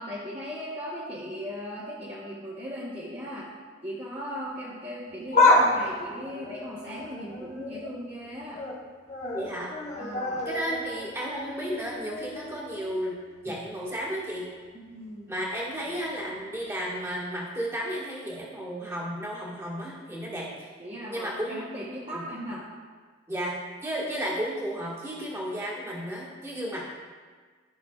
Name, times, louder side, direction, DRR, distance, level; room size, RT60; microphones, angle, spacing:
voice 1, 0.0-3.5 3.8-8.6 10.0-10.5 14.7-15.3 15.8-16.0 20.8-22.7, equal, 30° right, -8 dB, 1.1 m, -38 dB
sound 1, 5.1-7.9 8.3-8.8 9.1-13.0 13.4-13.5 14.5-14.6, left 2 dB, 35° left, 1.2 m, -28 dB
voice 2, 9.3-9.7 10.4-13.2 13.4-14.4 15.3-20.5 21.1-21.6 22.1-22.2 23.3-26.8, equal, 15° right, -6 dB, 1.6 m, -33 dB
13.5 x 5.9 x 2.4 m, 1.5 s
head